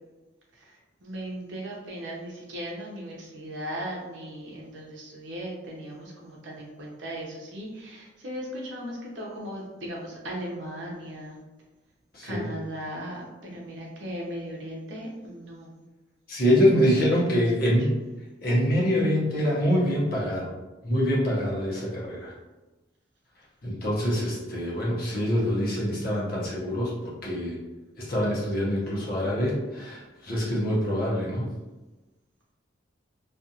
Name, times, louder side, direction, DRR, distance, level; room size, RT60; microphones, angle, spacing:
voice 1, 1.0-11.4 12.2-15.8 16.8-17.4 28.8-29.2, equal, 70° right, -3 dB, 0.7 m, -37 dB
voice 2, 12.1-12.5 16.3-17.9 18.4-20.5 20.8-22.3 23.6-27.6 28.0-31.5, equal, 50° left, -5 dB, 0.8 m, -25 dB
2.5 x 2.4 x 2.7 m, 1.1 s
head